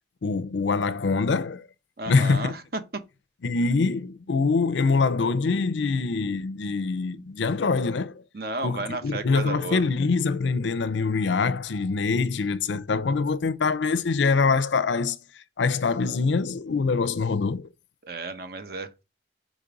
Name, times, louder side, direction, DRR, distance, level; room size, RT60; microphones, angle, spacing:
voice 1, 0.2-1.7 2.1-2.5 3.4-8.2 8.6-17.7, left 4 dB, 75° left, 0.5 m, -24 dB
voice 2, 2.0-3.0 8.3-9.8 18.0-19.0, right 2 dB, 55° right, 0.9 m, -33 dB
5.2 x 5.1 x 3.8 m
head